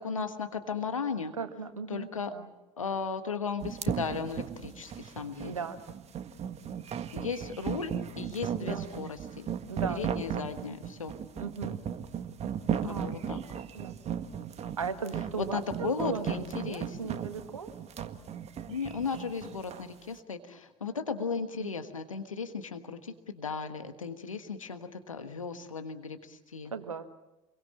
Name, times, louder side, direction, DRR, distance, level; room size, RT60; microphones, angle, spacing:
voice 1, 0.0-1.3 1.9-2.4 2.8-5.5 7.1-9.5 9.9-11.2 12.8-13.4 15.3-17.1 18.7-26.7, left 5 dB, 85° left, 8 dB, 1.4 m, -36 dB
voice 2, 1.4-2.1 2.3-2.5 5.4-5.9 8.6-8.8 9.7-10.0 11.4-11.8 12.8-13.2 13.7-13.9 14.8-16.2 16.6-17.7 21.6-21.7 26.7-27.1, right 5 dB, 85° right, 9 dB, 1.6 m, -37 dB
sound 1, 3.6-19.9, right 8 dB, 40° right, 1.7 m, -36 dB
28.0 x 22.5 x 7.4 m, 0.96 s
figure-of-eight pair, 65°, 17 cm